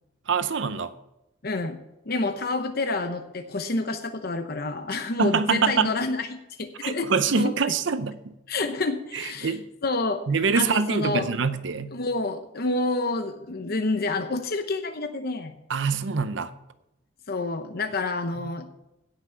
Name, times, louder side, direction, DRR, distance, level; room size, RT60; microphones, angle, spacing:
voice 1, 0.3-0.9 5.2-5.9 6.8-8.1 9.1-9.6 10.3-12.0 15.7-16.5 18.4-18.5, right 5 dB, 70° right, 12 dB, 0.6 m, -25 dB
voice 2, 1.4-1.8 2.1-6.3 6.6-7.1 7.4-7.5 8.5-10.2 10.5-11.3 11.9-15.5 17.3-18.7, left 3 dB, 50° left, 7 dB, 0.8 m, -28 dB
16.5 x 6.0 x 5.8 m, 0.90 s
head